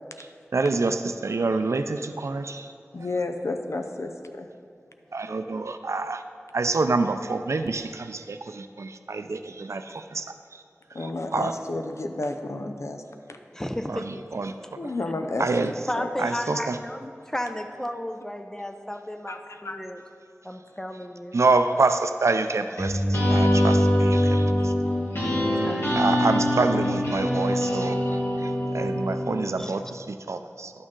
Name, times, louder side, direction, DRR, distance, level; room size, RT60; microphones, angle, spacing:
voice 1, 0.5-2.7 5.1-6.2 6.5-10.2 11.0-11.5 13.9-14.0 14.3-14.5 15.4-15.7 16.2-16.8 21.3-24.7 25.9-28.0 28.4-28.5 28.7-30.7, right 3 dB, 80° right, 8 dB, 0.4 m, -26 dB
voice 2, 2.9-4.5 10.9-13.0 14.8-16.3 19.3-19.8 24.6-24.7, left 2 dB, 75° left, 6 dB, 0.6 m, -32 dB
voice 3, 13.5-14.1 15.9-20.0 20.4-21.4 25.4-25.8 29.6-29.7, left 1 dB, 10° left, 6 dB, 0.6 m, -33 dB
sound 1, 22.8-29.5, equal, 60° left, 2.4 m, -23 dB
11.5 x 6.3 x 3.8 m, 2.3 s
wide cardioid pair, 55°, 5 cm